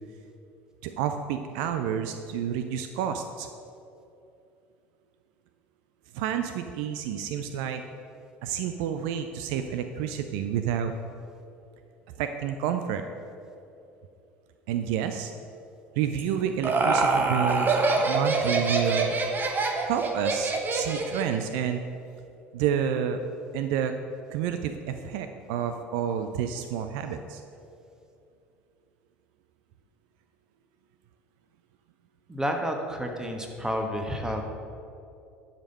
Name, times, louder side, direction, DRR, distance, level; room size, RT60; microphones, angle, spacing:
voice 1, 0.8-3.5 6.1-7.8 8.4-10.9 12.2-13.0 14.7-15.3 16.0-19.1 19.8-21.8 22.5-23.2 23.5-23.9 24.3-27.4, right 9 dB, 60° right, 8 dB, 0.4 m, -29 dB
Laughter, 16.2-21.4, right 3 dB, 30° right, 1.1 m, -25 dB
voice 2, 32.3-34.5, equal, 10° right, 2 dB, 1.3 m, -30 dB
11.0 x 5.2 x 5.3 m, 2.7 s
figure-of-eight pair, 65°, 7 cm